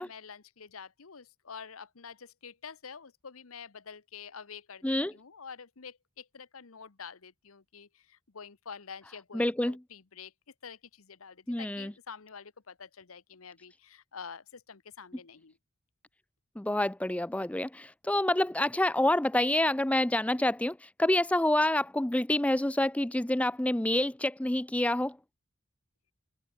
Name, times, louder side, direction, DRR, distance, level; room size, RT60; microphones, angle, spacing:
voice 1, 0.0-15.6, left 6 dB, 85° left, 1.1 m, -47 dB
voice 2, 9.3-9.8 11.5-11.9 16.6-25.2, left 1 dB, 5° left, 0.4 m, -27 dB
head